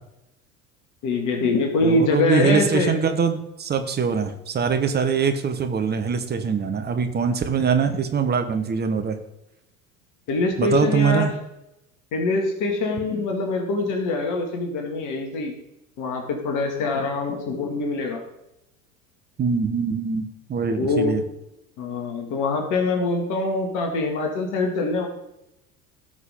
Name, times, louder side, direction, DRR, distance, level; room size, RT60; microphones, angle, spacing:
voice 1, 1.0-3.0 10.3-11.3 12.1-15.5 16.0-18.2 20.7-21.1 21.8-25.1, left 3 dB, 45° left, 3 dB, 2.2 m, -24 dB
voice 2, 1.8-9.2 10.6-11.3 19.4-21.2, right 6 dB, 20° right, 7 dB, 1.2 m, -23 dB
17.0 x 6.2 x 3.7 m, 0.87 s
figure-of-eight pair, 75°, 44 cm